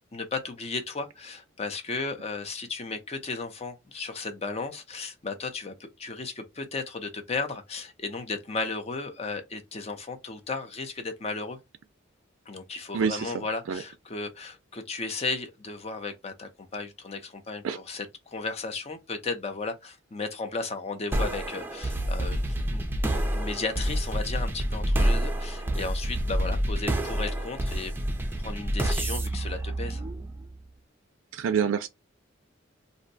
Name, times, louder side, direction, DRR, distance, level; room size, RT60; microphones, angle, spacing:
voice 1, 0.1-11.6 12.5-22.8 23.3-27.9 28.4-30.0, left 3 dB, 30° left, 0.6 m, -35 dB
voice 2, 12.9-13.3 13.7-13.8 17.6-17.8 31.3-31.9, right 7 dB, 85° right, 0.4 m, -26 dB
sound 1, 21.1-30.5, right 1 dB, 10° right, 0.5 m, -28 dB
2.6 x 2.1 x 3.9 m
head